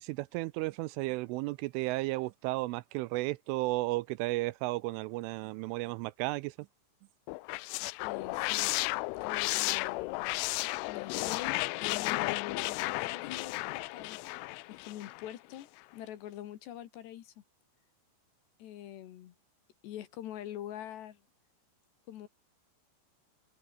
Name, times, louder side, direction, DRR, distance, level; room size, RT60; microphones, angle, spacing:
voice 1, 0.0-6.5, right 21 dB, 85° right, 3.0 m, -33 dB
sound 1, 7.3-15.3, left 24 dB, 85° left, 2.9 m, -34 dB
voice 2, 8.0-8.7 9.2-10.4 10.9-14.2 14.7-17.3 18.6-19.3 19.8-21.2 22.1-22.3, left 12 dB, 65° left, 3.3 m, -44 dB
omnidirectional pair, 5.9 m